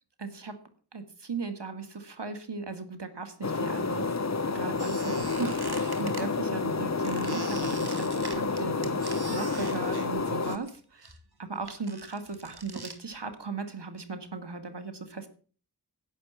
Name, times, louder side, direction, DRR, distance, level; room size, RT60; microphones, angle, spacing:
voice 1, 0.2-0.6 0.9-4.2 4.5-10.8 11.4-15.3, right 4 dB, 85° right, 8 dB, 2.1 m, -37 dB
sound 1, 3.4-10.6, left 4 dB, 40° left, 0.8 m, -29 dB
Squeak, 4.8-6.2 7.0-10.8 11.0-13.0, right 3 dB, 70° right, 2.3 m, -42 dB
11.0 x 9.0 x 7.4 m, 0.41 s
wide cardioid pair, 45°, 40 cm